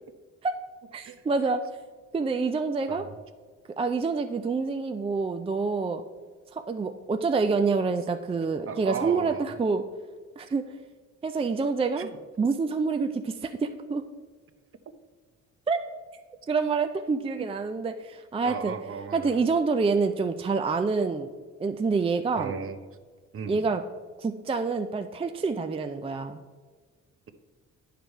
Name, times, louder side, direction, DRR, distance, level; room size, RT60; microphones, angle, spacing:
voice 1, 0.9-1.6 2.1-3.0 3.8-6.0 6.5-9.8 10.4-10.6 11.2-12.1 12.4-14.0 15.7-15.8 16.5-18.7 19.1-21.3 21.6-22.5 23.5-23.8 24.2-26.4, right 4 dB, 20° right, 7 dB, 0.4 m, -27 dB
voice 2, 8.7-9.4 11.9-12.2 18.4-19.4 22.4-22.8 23.3-23.7, right 6 dB, 45° right, 10 dB, 0.8 m, -36 dB
9.6 x 5.0 x 4.5 m, 1.4 s
cardioid pair, 90°, 30 cm